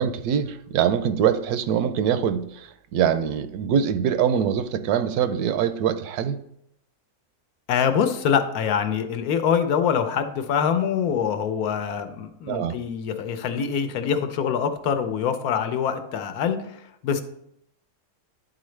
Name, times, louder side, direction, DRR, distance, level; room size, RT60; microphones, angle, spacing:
voice 1, 0.0-6.4 12.5-12.8, right 8 dB, 85° right, 11 dB, 1.1 m, -23 dB
voice 2, 7.7-17.2, left 7 dB, 80° left, 7 dB, 1.2 m, -24 dB
10.5 x 3.9 x 3.2 m, 0.74 s
omnidirectional pair, 1.6 m